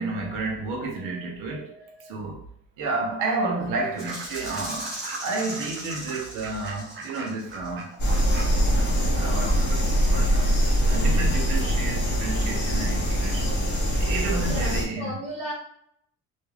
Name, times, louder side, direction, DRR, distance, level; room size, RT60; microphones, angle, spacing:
voice 1, 0.0-2.4 2.8-7.9 9.2-10.5 10.9-13.6 14.0-15.1, right 3 dB, 85° right, 0.7 m, -31 dB
Fowl / Bird, 3.8-10.0, right 3 dB, 40° right, 0.5 m, -41 dB
Rattle (instrument), 4.0-7.8, right 1 dB, ahead, 0.9 m, -38 dB
sound 1, 8.0-14.8, equal, 35° left, 0.8 m, -23 dB
voice 2, 14.4-15.5, equal, 20° right, 1.1 m, -35 dB
2.3 x 2.2 x 3.1 m
cardioid pair, 160°, 31 cm